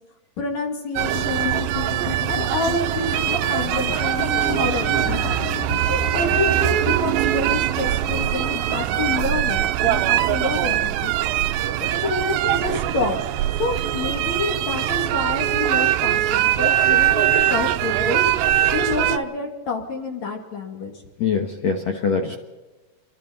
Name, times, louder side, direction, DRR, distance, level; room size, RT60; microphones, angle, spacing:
voice 1, 0.4-1.7 2.3-5.2 5.9-11.1 11.8-13.2 13.6-18.3 18.7-20.9, left 3 dB, 45° left, 2 dB, 3.3 m, -28 dB
sound 1, 1.0-19.2, right 13 dB, 85° right, 2.1 m, -22 dB
sound 2, 1.1-10.3 10.6-10.9 11.2-11.3 11.8-11.9 12.4-12.5, left 7 dB, 60° left, 2.1 m, -35 dB
voice 2, 21.2-22.4, left 5 dB, 80° left, 4 dB, 1.5 m, -23 dB
28.5 x 23.0 x 4.1 m, 1.2 s
omnidirectional pair, 5.3 m